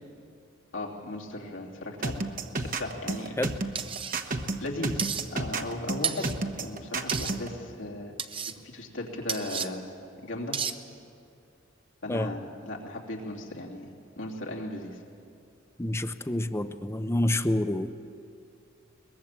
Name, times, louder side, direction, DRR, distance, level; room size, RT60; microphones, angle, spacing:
voice 1, 0.7-2.2 2.6-3.3 4.6-8.1 8.6-9.8 10.2-10.6 12.0-15.0, left 1 dB, 80° left, -1 dB, 3.1 m, -36 dB
sound 1, 2.0-7.5, right 3 dB, 45° right, 1.2 m, -31 dB
sound 2, 3.8-4.2 5.0-5.2 6.0-6.4 7.1-7.3 8.2-8.5 9.3-9.7 10.5-10.8, right 7 dB, 25° right, 0.8 m, -32 dB
voice 2, 15.8-18.2, left 1 dB, 15° left, 10 dB, 0.7 m, -28 dB
22.5 x 20.5 x 7.4 m, 2.5 s
head